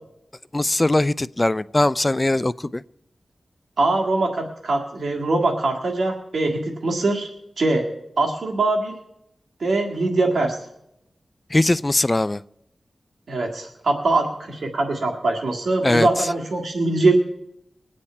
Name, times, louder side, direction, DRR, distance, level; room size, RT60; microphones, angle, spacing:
voice 1, 0.5-2.8 11.5-12.4 15.8-16.1, left 2 dB, 25° left, 17 dB, 0.4 m, -20 dB
voice 2, 3.8-7.3 7.6-7.8 8.2-8.9 9.6-10.6 13.3-17.1, right 2 dB, 85° right, 1 dB, 1.9 m, -22 dB
22.0 x 8.6 x 4.4 m, 0.81 s
wide cardioid pair, 60°, 0 cm